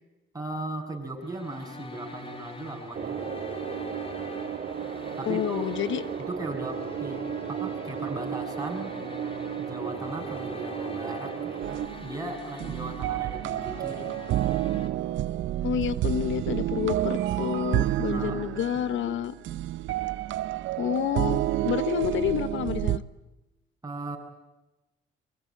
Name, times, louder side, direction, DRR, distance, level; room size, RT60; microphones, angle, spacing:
voice 1, 0.3-3.2 5.2-5.6 6.2-7.2 7.5-8.9 9.6-14.1 18.1-18.5 18.7-19.2 23.8-24.2, right 2 dB, 15° right, 2 dB, 8.0 m, -37 dB
sound 1, 1.2-14.9, left 2 dB, 30° left, 4.2 m, -43 dB
sound 2, 2.9-11.9, right 8 dB, 50° right, 3.1 m, -35 dB
voice 2, 5.2-6.0 15.6-19.4 20.8-23.0, left 10 dB, 75° left, 14 dB, 1.2 m, -29 dB
sound 3, 11.6-23.0, right 14 dB, 80° right, 0.9 m, -29 dB
24.0 x 23.5 x 8.8 m, 1.0 s
cardioid pair, 90°, 20 cm